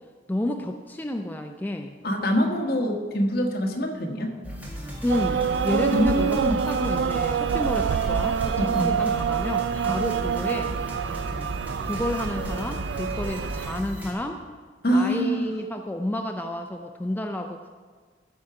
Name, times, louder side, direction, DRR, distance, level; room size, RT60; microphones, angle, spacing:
voice 1, 0.3-1.9 5.0-6.4 6.7-10.7 11.6-14.4 14.9-17.7, left 1 dB, 10° left, 4 dB, 0.4 m, -30 dB
voice 2, 2.0-4.3 5.9-6.6 8.6-9.0 14.8-15.5, equal, 60° left, 2 dB, 1.4 m, -25 dB
sound 1, 4.4-14.1, equal, 10° right, 1.8 m, -36 dB
sound 2, 5.1-13.8, right 7 dB, 80° right, 0.3 m, -26 dB
14.0 x 4.9 x 5.7 m, 1.5 s
head